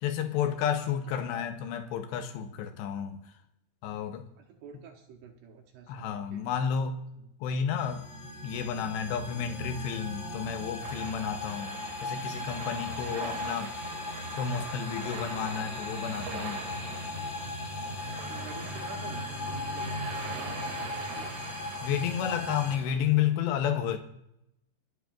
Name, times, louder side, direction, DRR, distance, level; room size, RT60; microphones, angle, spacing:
voice 1, 0.0-3.2 3.8-4.3 5.9-7.0 7.4-8.1 8.4-13.7 14.4-16.6 21.8-24.0, left 8 dB, 85° left, 2.5 m, -31 dB
voice 2, 4.4-6.5 7.2-7.3 13.1-13.4 18.3-21.4, right 6 dB, 80° right, 2.3 m, -49 dB
sound 1, 7.8-22.8, left 2 dB, 50° left, 2.0 m, -37 dB
sound 2, 10.8-23.0, right 5 dB, 60° right, 3.5 m, -43 dB
28.5 x 11.0 x 2.5 m
omnidirectional pair, 6.0 m